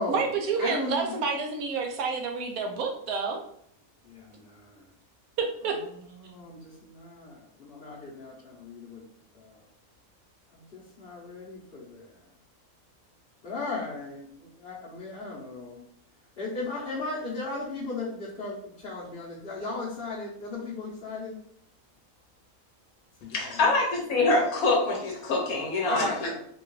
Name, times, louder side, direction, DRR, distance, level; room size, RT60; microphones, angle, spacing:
voice 1, 0.1-3.4 5.4-5.8, right 5 dB, 90° right, 4 dB, 1.1 m, -29 dB
voice 2, 0.6-1.1 4.0-4.9 6.2-9.0 9.3-9.6 10.5-12.2 13.4-15.8 16.4-21.4 23.2-23.6 25.8-26.4, left 3 dB, 50° left, -6 dB, 0.9 m, -36 dB
voice 3, 23.3-26.3, left 2 dB, 80° left, 0 dB, 1.1 m, -25 dB
3.5 x 2.3 x 3.1 m, 0.67 s
omnidirectional pair, 1.5 m